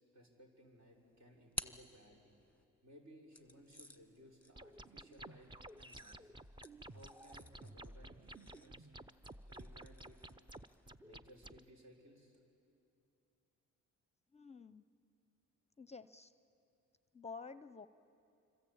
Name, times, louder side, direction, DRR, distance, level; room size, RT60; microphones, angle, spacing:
voice 1, 0.1-2.3 2.8-5.5 5.8-6.3 6.9-8.9 9.5-10.2 11.0-12.4, equal, 60° right, 0 dB, 6.2 m, -61 dB
sound 1, 0.8-2.6 3.3-10.9, equal, 5° left, 1.3 m, -53 dB
sound 2, 4.6-11.6, right 1 dB, 15° right, 0.7 m, -53 dB
voice 2, 14.3-14.9 15.8-16.3 17.1-17.9, left 4 dB, 20° left, 13 dB, 0.6 m, -50 dB
26.5 x 25.5 x 8.7 m, 2.8 s
cardioid pair, 90°, 30 cm